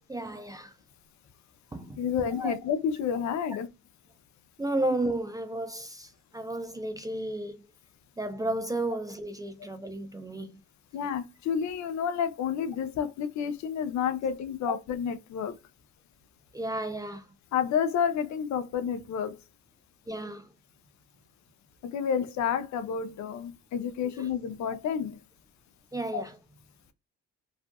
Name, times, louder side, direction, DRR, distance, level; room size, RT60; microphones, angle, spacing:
voice 1, 0.1-0.7 1.7-2.0 2.3-2.5 4.6-7.6 8.2-10.5 14.7-14.8 16.5-17.2 20.1-20.5 24.2-24.3 25.9-26.3, right 1 dB, 15° right, 0.3 m, -33 dB
voice 2, 2.0-3.7 10.9-15.5 17.5-19.4 21.9-25.2 26.1-26.2, left 7 dB, 65° left, 0.5 m, -30 dB
2.6 x 2.5 x 2.2 m
cardioid pair, 90°, 30 cm